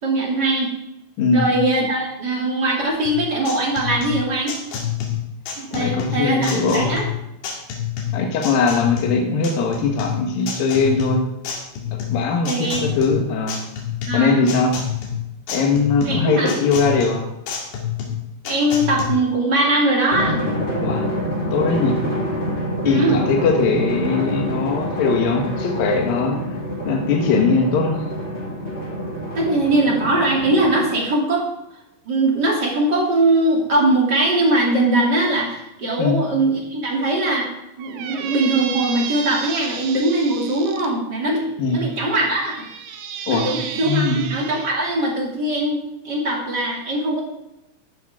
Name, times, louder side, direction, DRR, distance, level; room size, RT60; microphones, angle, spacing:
voice 1, 0.0-0.7 1.3-4.6 5.6-7.1 12.4-12.9 14.1-14.5 16.0-16.5 18.4-20.4 22.8-23.2 29.3-31.4 32.0-37.5 37.8-42.7 43.3-45.8 46.0-47.2, right 2 dB, 25° right, -2 dB, 2.8 m, -21 dB
voice 2, 1.2-1.5 5.7-6.9 8.1-11.2 12.1-13.6 14.1-14.7 15.5-17.3 20.8-21.1 21.5-22.0 22.8-26.4 26.9-28.0 36.0-36.2 41.6-41.8 43.3-43.5 43.8-44.2, left 4 dB, 65° left, 1 dB, 2.8 m, -20 dB
sound 1, 3.1-19.1, left 9 dB, 85° left, 4.5 m, -28 dB
Drum, 20.1-31.1, equal, 15° left, 4.6 m, -26 dB
Squeak, 37.8-40.9 41.7-44.8, right 8 dB, 70° right, 2.2 m, -32 dB
14.5 x 11.5 x 3.6 m, 0.87 s
omnidirectional pair, 5.1 m